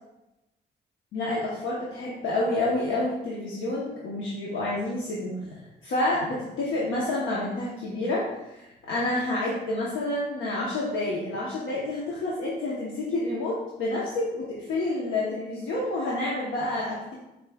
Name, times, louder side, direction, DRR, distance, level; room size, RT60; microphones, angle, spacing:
voice 1, 1.1-17.1, left 2 dB, 80° left, -5 dB, 0.9 m, -29 dB
5.4 x 3.9 x 2.3 m, 0.95 s
cardioid pair, 90°, 20 cm